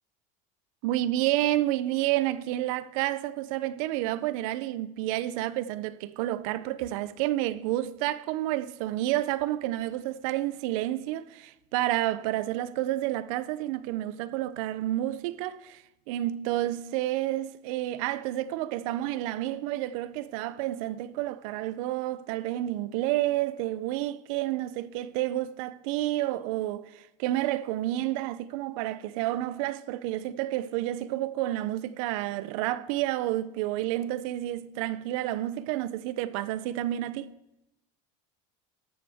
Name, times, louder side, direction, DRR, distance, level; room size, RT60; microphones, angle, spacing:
voice 1, 0.8-37.3, right 14 dB, 75° right, 0.6 m, -30 dB
14.0 x 11.5 x 3.5 m
cardioid pair, 160°, 17 cm